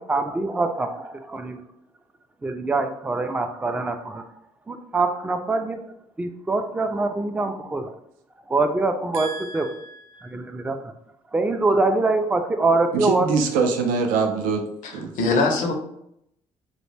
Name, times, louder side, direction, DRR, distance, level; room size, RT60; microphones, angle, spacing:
voice 1, 0.0-1.6 2.4-4.3 4.7-5.8 6.2-7.9 8.5-9.7 10.2-10.9 11.3-13.3, right 3 dB, 10° right, 7 dB, 0.3 m, -24 dB
voice 2, 9.1-10.4 12.9-14.6 14.9-15.1, right 5 dB, 80° right, 4 dB, 0.4 m, -25 dB
voice 3, 14.8-15.7, left 3 dB, 70° left, 3 dB, 0.6 m, -22 dB
2.3 x 2.1 x 3.2 m, 0.75 s
supercardioid pair, 60°, 14 cm